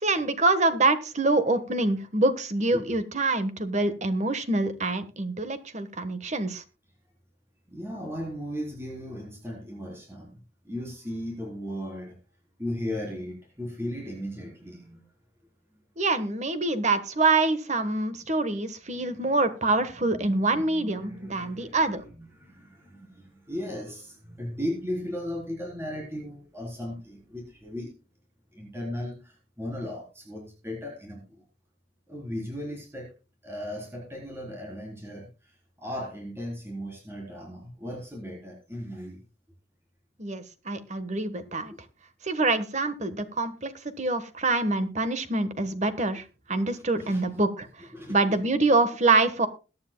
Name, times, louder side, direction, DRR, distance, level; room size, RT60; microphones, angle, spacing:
voice 1, 0.0-6.6 16.0-22.0 40.2-41.7 42.2-43.7 44.0-49.5, right 2 dB, 35° right, 11 dB, 1.3 m, -25 dB
voice 2, 7.7-10.4 10.6-12.2 12.6-15.0 15.7-15.8 18.9-19.3 19.9-27.9 28.5-31.4 32.1-33.1 33.4-39.2 41.7-41.8 46.7-47.4 47.9-48.2, left 1 dB, 15° right, -1 dB, 3.9 m, -37 dB
21.5 x 9.6 x 2.3 m, 0.32 s
head